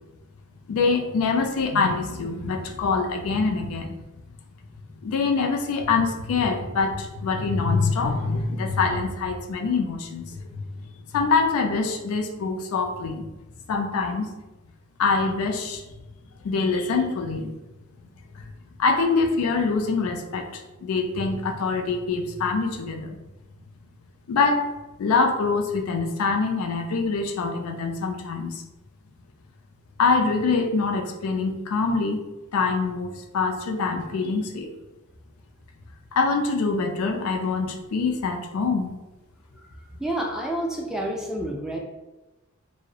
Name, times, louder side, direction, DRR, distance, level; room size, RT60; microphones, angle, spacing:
voice 1, 0.7-4.0 5.0-10.6 11.1-13.2 13.7-14.3 15.0-15.8 16.4-17.5 18.3-18.5 18.8-23.2 24.3-24.7 25.0-28.6 30.0-32.2 32.5-34.7 36.1-38.9, left 4 dB, 80° left, 4 dB, 0.3 m, -24 dB
voice 2, 40.0-41.8, right 1 dB, 5° right, -2 dB, 0.3 m, -29 dB
2.3 x 2.0 x 2.7 m, 1.1 s
head